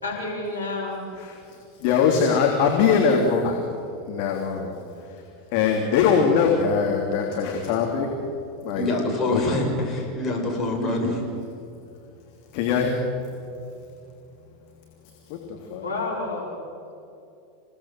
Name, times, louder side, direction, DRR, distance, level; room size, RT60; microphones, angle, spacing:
voice 1, 0.0-1.1 15.7-16.6, left 2 dB, 85° left, -2 dB, 5.0 m, -30 dB
voice 2, 1.8-3.6 4.1-5.2 5.5-8.1 8.6-8.9 9.3-9.6 12.5-12.9 15.3-15.8, left 6 dB, 55° left, 1 dB, 3.2 m, -22 dB
voice 3, 8.8-11.2, left 2 dB, 25° left, 0 dB, 6.9 m, -25 dB
28.0 x 18.0 x 7.7 m, 2.7 s
figure-of-eight pair, 85°, 0 cm